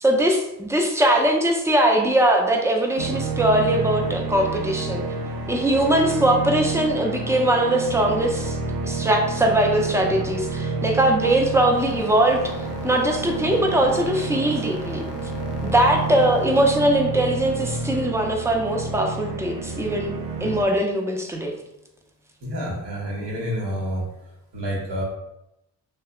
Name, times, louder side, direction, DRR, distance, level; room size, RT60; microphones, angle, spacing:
voice 1, 0.0-5.0 5.5-8.6 8.8-12.4 12.8-15.0 15.6-20.1 20.4-21.5, right 1 dB, 5° right, 1 dB, 0.4 m, -21 dB
Forest Meditation, 3.0-20.6, right 4 dB, 60° right, 0.5 m, -29 dB
sound 1, 11.7-16.7, left 7 dB, 70° left, 0.5 m, -39 dB
voice 2, 22.4-24.1 24.5-25.0, equal, 80° right, -3 dB, 1.0 m, -28 dB
2.6 x 2.1 x 2.3 m, 0.87 s
cardioid pair, 55°, 41 cm